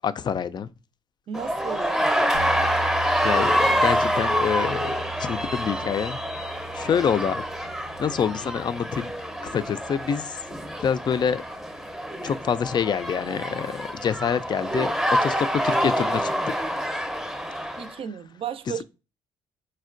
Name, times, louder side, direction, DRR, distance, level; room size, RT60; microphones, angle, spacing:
voice 1, 0.0-0.7 3.2-4.9 5.2-6.2 6.7-7.4 8.0-9.1 9.4-10.4 10.8-11.4 12.2-14.9 15.2-16.6, left 7 dB, 40° left, 0.3 m, -26 dB
sound 1, 1.3-17.9, equal, 5° right, 0.7 m, -26 dB
voice 2, 1.3-2.1 17.8-18.8, right 8 dB, 50° right, 0.5 m, -34 dB
sound 2, 2.3-12.4, right 5 dB, 90° right, 0.7 m, -41 dB
4.3 x 2.2 x 2.5 m
supercardioid pair, 65°, 12 cm